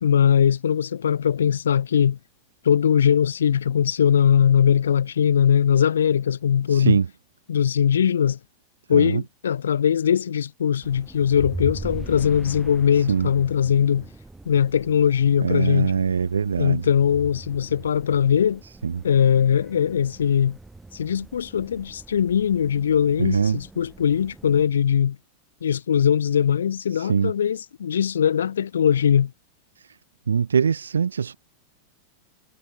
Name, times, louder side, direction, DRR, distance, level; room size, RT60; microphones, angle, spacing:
voice 1, 0.0-2.2 2.6-7.0 7.5-8.4 8.9-14.1 14.4-15.9 16.6-18.6 19.0-20.6 20.9-25.2 25.6-29.3, left 8 dB, 65° left, 1.7 m, -20 dB
voice 2, 6.7-7.1 8.9-9.2 13.1-13.3 15.4-16.8 18.8-19.0 23.2-23.6 26.9-27.3 30.3-31.3, right 6 dB, 70° right, 1.5 m, -22 dB
sound 1, 10.8-24.7, right 2 dB, 10° right, 3.5 m, -41 dB
figure-of-eight pair, 90°, 0 cm